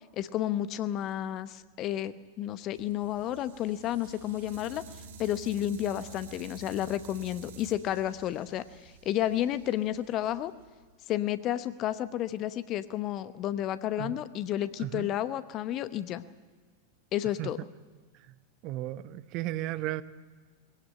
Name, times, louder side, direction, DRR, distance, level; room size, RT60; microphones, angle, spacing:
voice 1, 0.2-4.8 5.2-10.5 11.1-16.2 17.1-17.6, left 12 dB, 35° left, 0.9 m, -31 dB
sound 1, 2.7-10.8, right 4 dB, 55° right, 4.0 m, -50 dB
voice 2, 18.6-20.0, right 15 dB, 40° right, 0.8 m, -34 dB
21.0 x 17.0 x 8.6 m
figure-of-eight pair, 90°, 0 cm